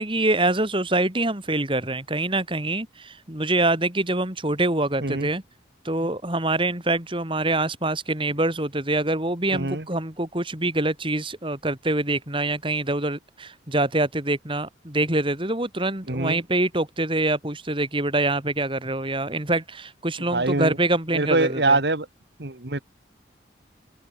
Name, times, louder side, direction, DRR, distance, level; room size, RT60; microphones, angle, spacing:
voice 1, 0.0-5.4 5.8-21.8, right 2 dB, 30° right, 3.9 m, -25 dB
voice 2, 9.5-9.8 16.1-16.4 20.3-20.8 21.1-22.1 22.4-22.8, right 2 dB, 65° right, 2.1 m, -24 dB
open air
head